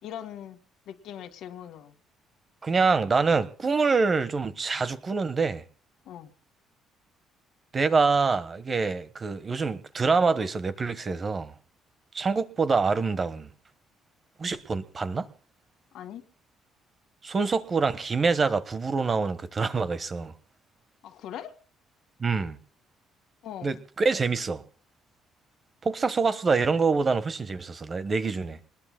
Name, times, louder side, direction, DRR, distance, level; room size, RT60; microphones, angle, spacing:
voice 1, 0.0-0.6 0.9-1.9 6.1-6.3 15.9-16.2 21.0-21.5 23.4-23.8, left 10 dB, 70° left, 2.0 m, -40 dB
voice 2, 2.6-5.6 7.7-11.5 12.1-13.5 14.4-15.3 17.2-20.3 22.2-22.6 23.6-24.6 25.8-28.6, right 4 dB, 30° right, 1.3 m, -25 dB
25.5 x 20.5 x 2.2 m
cardioid pair, 130°, 0 cm